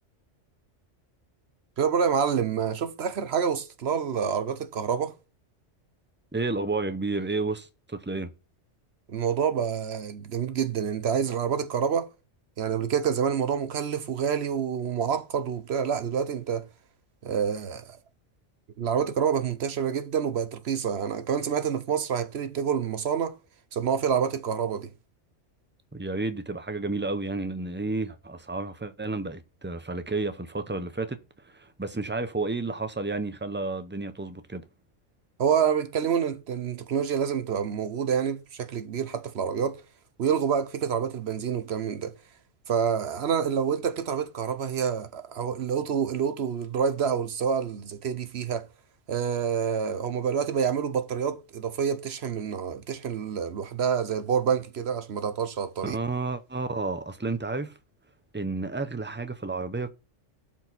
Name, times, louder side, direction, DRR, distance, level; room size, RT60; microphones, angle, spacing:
voice 1, 1.8-5.1 9.1-12.1 12.6-16.7 17.2-18.0 18.8-23.4 23.7-24.9 35.4-39.8 40.2-42.2 42.7-48.7 49.1-56.0, right 7 dB, 60° right, 1.0 m, -27 dB
voice 2, 6.3-8.3 25.9-34.6 55.8-57.7 58.3-60.0, right 3 dB, 15° right, 0.4 m, -31 dB
12.0 x 4.6 x 4.0 m
omnidirectional pair, 1.3 m